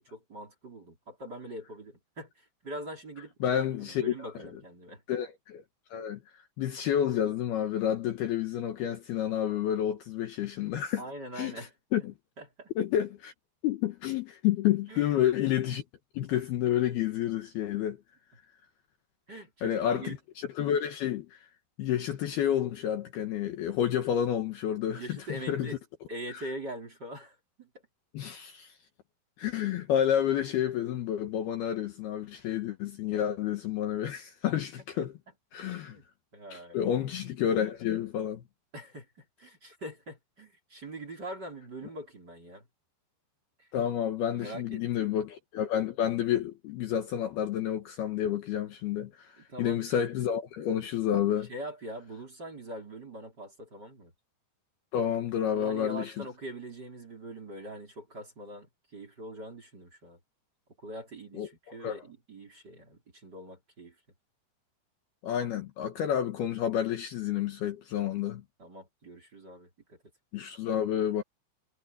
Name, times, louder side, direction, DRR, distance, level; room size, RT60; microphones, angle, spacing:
voice 1, 0.0-5.0 11.0-11.7 12.4-12.7 14.9-15.2 19.3-20.2 24.9-25.8 26.1-27.7 35.8-36.1 36.3-36.8 38.7-42.7 43.6-43.7 44.3-45.1 49.4-49.9 51.5-54.1 55.5-60.2 60.8-63.9 68.6-70.0, right 1 dB, 25° right, 3.9 m, -43 dB
voice 2, 3.4-4.3 5.1-5.6 5.9-6.2 6.6-11.0 11.4-11.7 11.9-12.1 12.8-13.3 13.6-15.8 16.1-18.0 19.6-21.4 21.8-25.8 26.3-26.5 28.1-28.7 29.4-35.2 35.5-36.0 36.5-38.4 43.7-51.5 54.9-56.3 61.3-62.0 65.2-68.4 70.3-71.2, left 10 dB, 65° left, 2.9 m, -30 dB
omnidirectional pair, 5.5 m